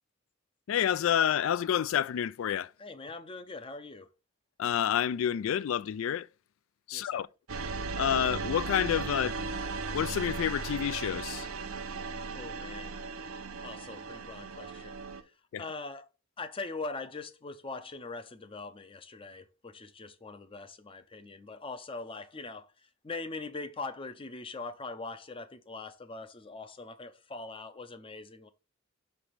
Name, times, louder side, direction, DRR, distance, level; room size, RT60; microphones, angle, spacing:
voice 1, 0.7-2.7 4.6-6.3 6.9-7.3 8.0-9.4 9.9-11.5 15.5-15.6, left 9 dB, 70° left, 0.3 m, -29 dB
voice 2, 2.8-4.1 6.9-7.3 12.3-13.0 13.6-15.0 15.6-16.0 16.4-22.7 23.0-28.5, left 3 dB, 25° left, 0.6 m, -42 dB
sound 1, 7.5-15.2, right 4 dB, 90° right, 0.8 m, -37 dB
6.0 x 3.3 x 5.8 m
head